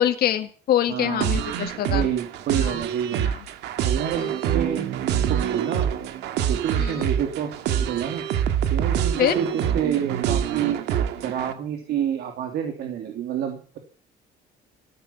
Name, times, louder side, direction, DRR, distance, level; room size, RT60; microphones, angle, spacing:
voice 1, 0.0-2.1 2.6-2.8 3.2-3.4 4.1-4.3 6.8-7.1 9.2-9.4, left 11 dB, 65° left, 7 dB, 1.8 m, -24 dB
voice 2, 0.9-1.4 1.9-3.3 3.8-4.9 5.1-5.9 6.5-8.2 8.7-10.8 11.2-13.8, right 9 dB, 70° right, 4 dB, 3.1 m, -28 dB
sound 1, 1.2-11.5, right 9 dB, 85° right, 2.0 m, -26 dB
15.0 x 13.0 x 7.2 m, 0.42 s
cardioid pair, 110°, 17 cm